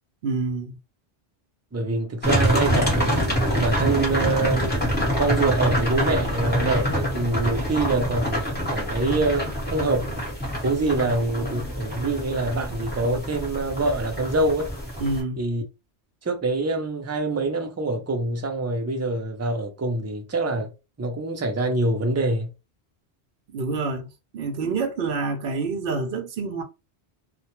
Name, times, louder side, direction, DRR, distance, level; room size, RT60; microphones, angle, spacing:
voice 1, 0.2-0.8 11.0-11.1 15.0-15.4 23.5-24.1 24.3-26.6, right 3 dB, 65° right, 0.8 m, -27 dB
voice 2, 1.7-3.3 3.6-4.6 5.2-8.4 8.7-10.1 10.6-14.7 15.4-15.6 16.2-20.7 21.0-22.5, right 2 dB, 25° right, 0.3 m, -25 dB
sound 1, 2.2-15.2, equal, 10° left, 1.0 m, -26 dB
2.2 x 2.2 x 2.9 m
omnidirectional pair, 1.1 m